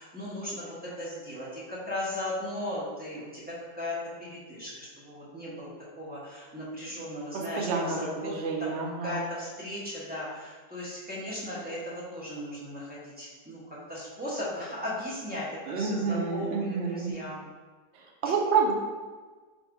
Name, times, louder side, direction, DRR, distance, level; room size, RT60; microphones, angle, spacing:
voice 1, 0.0-5.7 6.0-8.3 8.6-8.7 9.0-13.6 13.9-17.4 18.2-18.3, left 1 dB, 5° right, -9 dB, 0.9 m, -37 dB
voice 2, 7.3-9.2 15.7-17.1 17.9-18.7, right 5 dB, 70° right, -1 dB, 0.6 m, -29 dB
4.0 x 2.8 x 4.6 m, 1.4 s
omnidirectional pair, 2.1 m